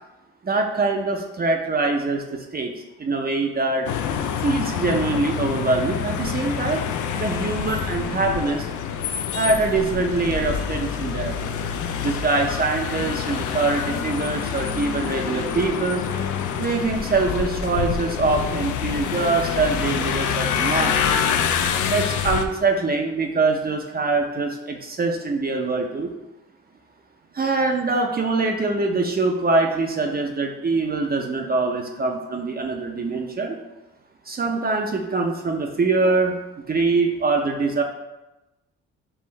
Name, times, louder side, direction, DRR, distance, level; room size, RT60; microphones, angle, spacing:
voice 1, 0.4-2.7 3.0-3.9 4.4-6.8 7.2-8.7 9.3-11.3 12.0-16.1 16.6-21.0 21.9-26.1 27.3-33.6 34.3-36.4 36.7-37.8, right 3 dB, 30° right, 2 dB, 0.5 m, -23 dB
sound 1, 3.9-22.5, left 7 dB, 75° left, 0.5 m, -26 dB
5.5 x 2.5 x 3.1 m, 1.0 s
cardioid pair, 70°, 30 cm